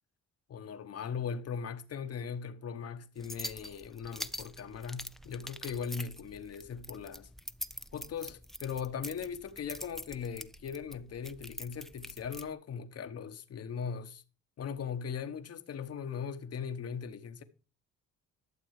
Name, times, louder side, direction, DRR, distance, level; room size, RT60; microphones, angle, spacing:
voice 1, 0.5-7.3 7.9-14.2 14.6-17.4, left 7 dB, 55° left, 1.2 m, -39 dB
sound 1, 3.2-12.5, equal, ahead, 0.5 m, -45 dB
12.0 x 7.0 x 4.8 m
cardioid pair, 90°, 30 cm